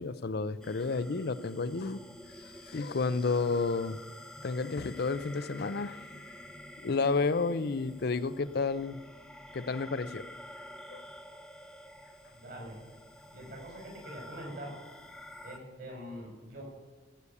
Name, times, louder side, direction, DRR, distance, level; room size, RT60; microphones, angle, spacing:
voice 1, 0.0-2.0 2.7-4.0 4.4-6.0 6.8-9.0 9.5-10.3 10.9-11.0, left 4 dB, 60° left, 14 dB, 0.5 m, -31 dB
sound 1, 0.6-15.6, left 1 dB, 5° left, 0.8 m, -49 dB
voice 2, 12.3-12.8 13.3-14.7 15.4-16.6, equal, 55° right, -1 dB, 5.3 m, -44 dB
14.5 x 7.0 x 8.4 m, 1.3 s
head